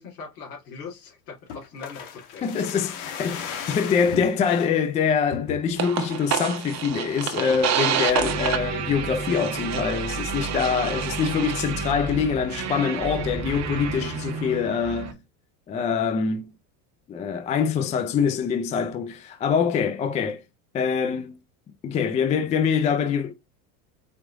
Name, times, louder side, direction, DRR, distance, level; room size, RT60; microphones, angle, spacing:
voice 1, 0.0-2.5, left 5 dB, 80° left, 2.8 m, -41 dB
sound 1, 1.5-4.7 5.3-5.9 6.3-6.4 6.7-7.0 7.5-7.8 8.3-9.0 9.3-9.4, left 7 dB, 60° left, 1.5 m, -37 dB
voice 2, 2.4-15.2 15.7-16.5 17.1-20.4 20.7-21.4 21.8-23.3, left 6 dB, 15° left, 0.3 m, -24 dB
sound 2, 5.8-15.1, right 7 dB, 35° right, 1.0 m, -29 dB
4.9 x 3.0 x 3.5 m
hypercardioid pair, 95°, 48 cm